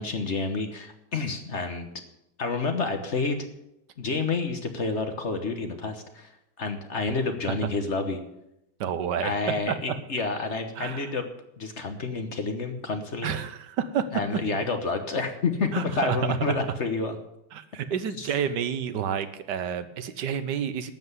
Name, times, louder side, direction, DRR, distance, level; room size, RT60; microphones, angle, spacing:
voice 1, 0.0-1.9 2.4-3.4 4.0-6.3 6.6-8.2 9.2-11.2 11.6-13.3 14.1-17.2 18.2-18.3, left 4 dB, 45° left, 7 dB, 1.3 m, -29 dB
voice 2, 8.8-9.3 9.7-10.0 10.8-11.0 13.2-14.1 15.7-16.5 17.5-20.9, right 8 dB, 75° right, 11 dB, 1.5 m, -29 dB
12.5 x 7.8 x 8.0 m, 0.85 s
omnidirectional pair, 1.9 m